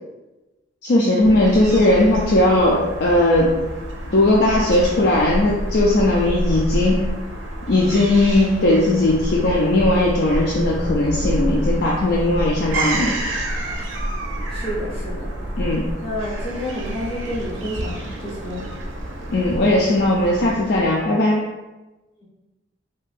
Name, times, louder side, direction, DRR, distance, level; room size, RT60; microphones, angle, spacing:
voice 1, 0.8-3.5 4.1-7.0 7.7-13.2 15.6-15.9 19.3-21.4, left 1 dB, 60° left, -3 dB, 0.4 m, -18 dB
Fowl / Gull seagull, 1.2-21.1, right 1 dB, 90° right, 0.5 m, -28 dB
voice 2, 14.5-15.3 16.0-18.6, equal, 30° left, -7 dB, 1.2 m, -29 dB
3.6 x 2.7 x 2.5 m, 1.1 s
head